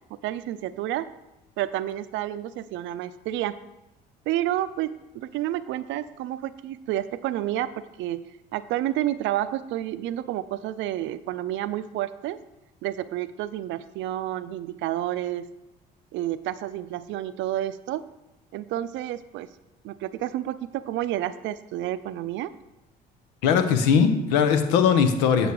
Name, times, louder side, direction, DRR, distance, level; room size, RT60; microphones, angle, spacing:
voice 1, 0.2-1.1 1.6-3.6 4.3-12.4 12.8-15.5 16.1-18.1 18.5-19.5 19.8-22.5, right 13 dB, 65° right, 14 dB, 0.6 m, -30 dB
voice 2, 23.4-25.5, left 6 dB, 80° left, 8 dB, 1.0 m, -20 dB
8.0 x 6.5 x 4.8 m, 0.96 s
hypercardioid pair, 60°, 21 cm